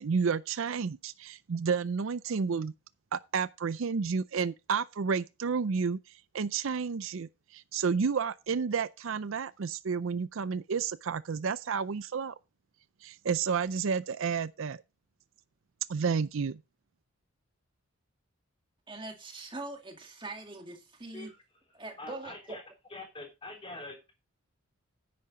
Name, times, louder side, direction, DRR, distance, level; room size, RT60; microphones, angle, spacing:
voice 1, 0.0-2.7 3.1-12.3 13.0-14.8 15.9-16.6, right 5 dB, 65° right, 0.5 m, -31 dB
voice 2, 18.9-21.3 21.7-22.6, right 2 dB, 20° right, 1.9 m, -42 dB
voice 3, 22.0-22.6 22.9-24.1, left 2 dB, 25° left, 3.3 m, -44 dB
10.5 x 8.5 x 4.0 m
head